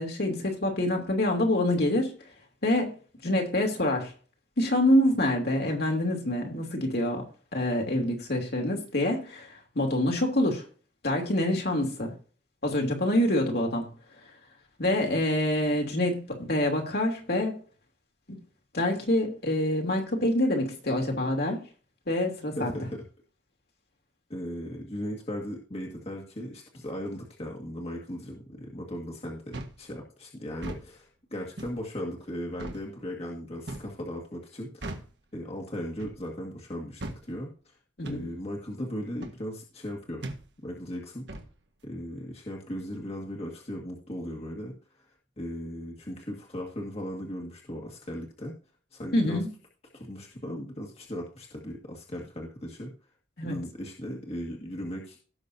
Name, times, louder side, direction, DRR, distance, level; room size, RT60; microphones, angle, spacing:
voice 1, 0.0-2.1 2.6-2.9 3.2-4.1 4.6-7.2 7.5-10.6 11.0-12.1 12.6-13.9 14.8-17.5 18.3-18.4 18.7-21.6 22.1-22.7 38.0-38.2 49.1-49.5 53.4-53.6, left 1 dB, 60° left, 2 dB, 2.8 m, -26 dB
voice 2, 22.6-23.0 24.3-35.0 35.3-37.8 38.0-40.2 40.6-41.3 41.8-44.7 45.4-48.6 48.9-49.4 49.9-52.9 53.4-55.2, equal, 35° left, -1 dB, 1.9 m, -37 dB
sound 1, 29.5-29.8 30.5-30.9 31.6-31.8 32.6-32.8 33.7-33.9 34.8-35.1 36.0-36.2 37.0-37.2 38.0-38.2 39.2-39.4 40.2-40.4 41.3-41.5, right 2 dB, 65° right, 1.6 m, -38 dB
17.5 x 6.4 x 2.7 m, 0.38 s
head